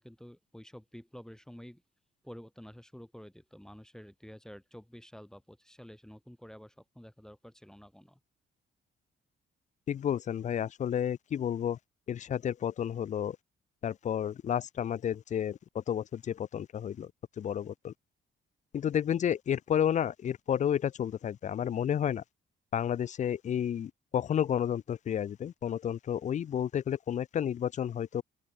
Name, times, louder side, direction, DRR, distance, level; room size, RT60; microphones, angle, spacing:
voice 1, 0.0-1.8 2.2-8.2, equal, 5° left, 2.5 m, -50 dB
voice 2, 9.9-11.8 12.1-13.4 13.8-17.1 17.4-17.9 18.7-22.2 22.7-28.2, left 9 dB, 35° left, 0.3 m, -31 dB
open air
cardioid pair, 145°, 21 cm